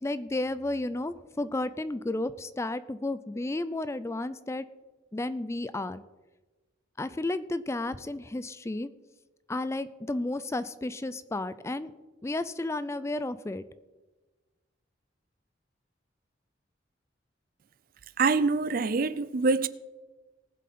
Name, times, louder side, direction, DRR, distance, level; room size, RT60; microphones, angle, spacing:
voice 1, 0.0-4.6 5.1-6.0 7.0-8.9 9.5-11.9 12.2-13.6, left 2 dB, 15° left, 0.4 m, -32 dB
voice 2, 18.2-19.7, right 4 dB, 50° right, 0.5 m, -25 dB
19.0 x 7.4 x 4.2 m
head